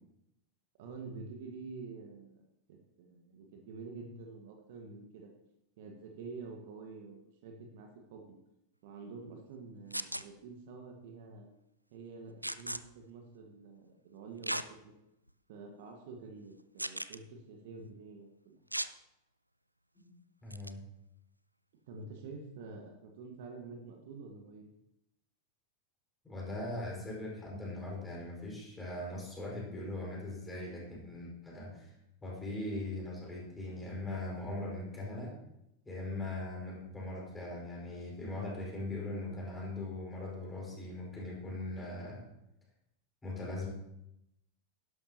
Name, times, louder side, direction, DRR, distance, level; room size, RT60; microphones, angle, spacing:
voice 1, 0.8-5.3 5.8-8.4 8.8-11.5 11.9-14.9 15.5-18.6 21.9-24.7, right 4 dB, 50° right, 2 dB, 1.6 m, -48 dB
sound 1, 9.9-10.2 12.4-12.8 14.4-14.7 15.3-15.4 16.8-17.2 18.7-18.9 20.5-20.7, right 1 dB, 85° right, 0.4 m, -36 dB
voice 2, 20.4-20.8 26.2-31.9 32.2-35.4 35.8-42.2 43.2-43.7, left 2 dB, 10° left, -4 dB, 4.9 m, -40 dB
12.0 x 11.5 x 2.9 m, 0.84 s
figure-of-eight pair, 90°, 0 cm